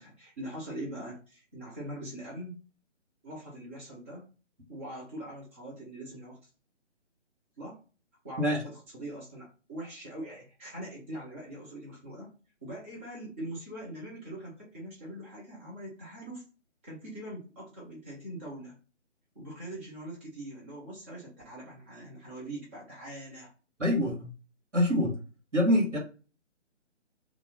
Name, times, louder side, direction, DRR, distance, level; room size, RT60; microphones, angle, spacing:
voice 1, 0.0-2.6 3.2-4.3 4.7-6.4 7.6-7.8 8.2-12.3 12.6-16.4 16.8-18.8 19.3-23.5, right 1 dB, 10° right, -5 dB, 0.6 m, -42 dB
voice 2, 23.8-24.3 24.7-25.2 25.5-26.0, left 1 dB, 85° right, -1 dB, 1.8 m, -25 dB
3.0 x 2.4 x 3.6 m, 0.35 s
figure-of-eight pair, 145°, 36 cm